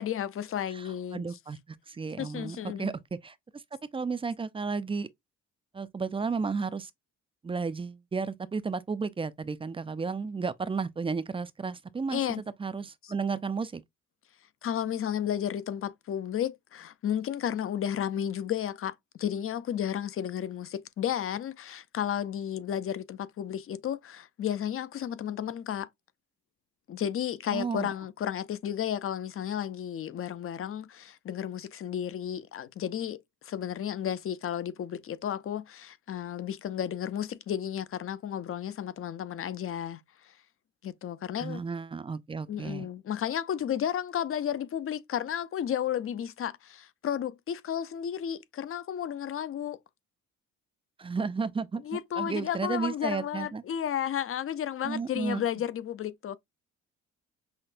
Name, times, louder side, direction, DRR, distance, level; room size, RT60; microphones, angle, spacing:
voice 1, 0.0-1.4 2.2-2.9 12.1-12.4 13.0-13.1 14.6-25.9 26.9-40.3 40.8-41.6 42.5-49.8 51.8-56.4, left 9 dB, 45° left, 0.5 m, -33 dB
voice 2, 1.1-1.6 1.9-3.3 3.9-5.1 5.7-6.9 7.4-12.2 12.6-13.8 27.5-27.9 41.4-42.9 51.0-53.6 54.8-55.4, right 5 dB, 20° right, 0.4 m, -33 dB
5.7 x 2.1 x 2.5 m
cardioid pair, 90°, 30 cm